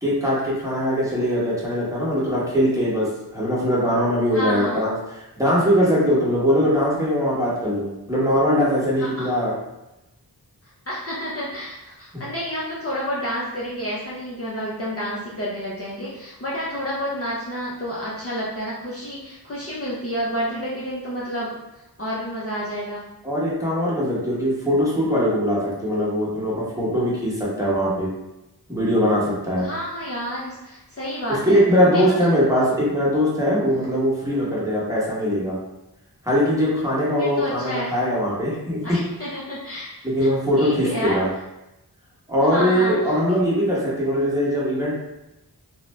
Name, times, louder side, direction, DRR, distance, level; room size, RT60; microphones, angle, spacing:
voice 1, 0.0-3.1 3.3-4.9 5.4-9.5 23.2-28.1 28.7-29.7 31.4-35.6 36.2-38.8 40.0-41.3 42.3-44.9, equal, 10° right, -7 dB, 0.9 m, -21 dB
voice 2, 4.3-4.8 9.0-9.3 10.9-21.6 22.0-23.1 29.6-31.6 31.9-32.4 33.8-33.9 37.2-37.9 38.8-39.9 40.6-41.2 42.4-43.1, equal, 35° left, -7 dB, 0.5 m, -29 dB
2.5 x 2.1 x 3.1 m, 0.94 s
wide cardioid pair, 50°, 42 cm